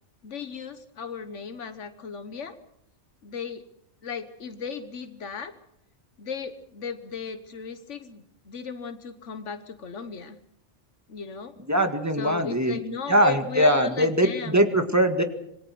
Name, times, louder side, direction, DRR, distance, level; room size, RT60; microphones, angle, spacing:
voice 1, 0.2-2.5 3.2-3.6 4.0-5.5 6.2-10.4 11.1-11.5 12.2-14.7, left 6 dB, 90° left, 9 dB, 1.5 m, -36 dB
voice 2, 11.7-12.8 13.1-15.2, equal, 15° right, 6 dB, 1.9 m, -21 dB
26.5 x 21.0 x 6.1 m, 0.76 s
omnidirectional pair, 1.2 m